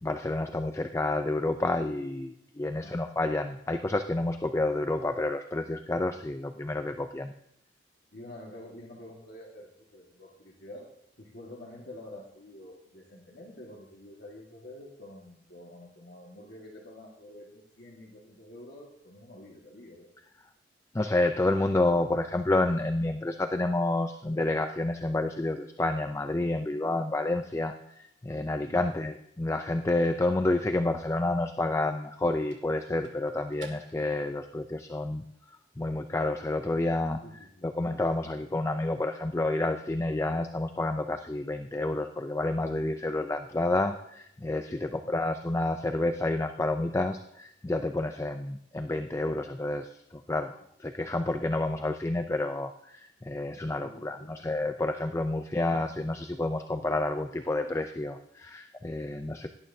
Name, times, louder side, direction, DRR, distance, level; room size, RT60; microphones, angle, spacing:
voice 1, 0.0-7.3 20.9-37.2 37.6-59.5, left 2 dB, 15° left, 7 dB, 0.4 m, -29 dB
voice 2, 8.1-10.9 11.2-20.1 37.2-37.7 44.7-45.2 53.7-54.4, left 1 dB, 60° left, -2 dB, 1.7 m, -48 dB
sound 1, 32.2-34.6, right 4 dB, 75° right, 2.0 m, -55 dB
17.5 x 11.0 x 2.7 m, 0.76 s
head